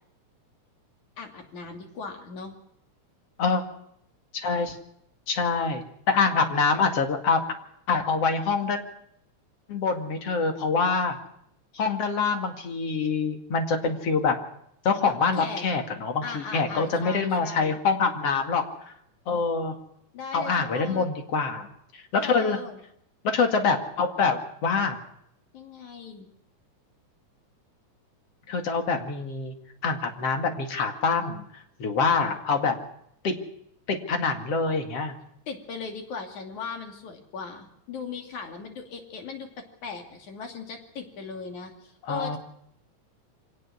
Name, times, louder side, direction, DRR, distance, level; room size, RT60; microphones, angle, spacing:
voice 1, 1.2-2.5 15.0-15.7 16.2-17.8 20.1-21.1 22.2-22.8 25.5-26.3 35.5-42.4, left 5 dB, 75° left, 3 dB, 4.1 m, -38 dB
voice 2, 4.3-4.8 5.3-7.4 7.9-8.8 9.7-11.2 11.7-14.4 14.8-18.6 19.3-19.8 20.3-21.7 21.9-22.6 23.2-25.0 28.5-29.5 29.8-31.4 31.8-32.8 33.2-33.4 33.9-35.1 42.1-42.4, left 4 dB, 55° left, 4 dB, 3.1 m, -25 dB
24.5 x 18.0 x 6.3 m, 0.72 s
omnidirectional pair, 3.5 m